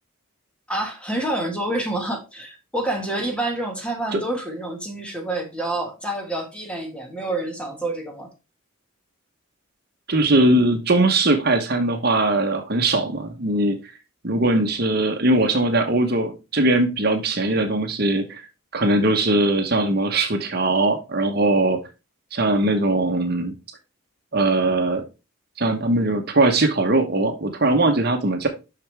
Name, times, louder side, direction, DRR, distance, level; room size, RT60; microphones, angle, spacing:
voice 1, 0.7-8.3, right 1 dB, 5° left, 2 dB, 1.6 m, -28 dB
voice 2, 10.1-13.8 14.2-18.4 18.7-21.8 22.3-23.5 24.3-25.0 25.6-28.5, right 2 dB, 50° right, 5 dB, 1.1 m, -20 dB
6.9 x 5.9 x 3.4 m, 0.27 s
head